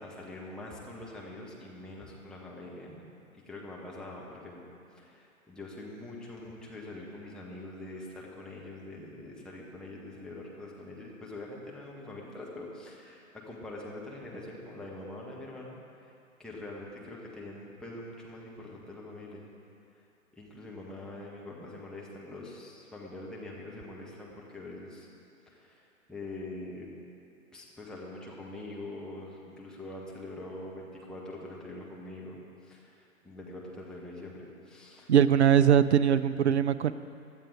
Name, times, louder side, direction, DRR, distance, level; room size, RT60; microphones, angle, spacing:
voice 1, 0.0-3.0 3.3-4.6 4.9-15.8 16.0-16.1 16.4-19.5 20.3-25.1 25.5-26.9 27.5-35.1, left 2 dB, ahead, -4 dB, 1.5 m, -44 dB
voice 2, 35.1-36.9, right 9 dB, 55° right, 15 dB, 0.6 m, -21 dB
16.5 x 11.5 x 4.9 m, 2.5 s
figure-of-eight pair, 120°, 42 cm